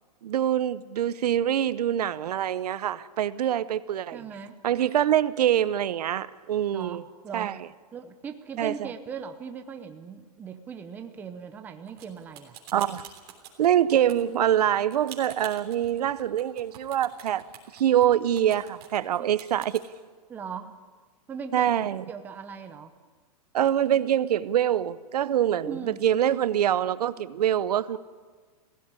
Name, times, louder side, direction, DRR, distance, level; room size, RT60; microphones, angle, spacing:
voice 1, 0.2-4.2 4.6-7.0 7.3-7.6 8.6-8.9 12.7-13.1 13.6-17.4 17.7-19.8 21.5-22.0 23.5-28.0, right 10 dB, 80° right, 0.8 m, -25 dB
voice 2, 4.1-4.5 6.7-7.0 7.2-7.5 7.9-12.6 14.1-14.3 19.2-19.3 20.3-20.8 21.3-21.7 22.1-22.9 25.6-26.0, right 6 dB, 10° right, 0.7 m, -39 dB
sound 1, 11.9-19.8, right 10 dB, 40° right, 3.4 m, -46 dB
17.0 x 16.0 x 9.7 m
supercardioid pair, 170°, 20 cm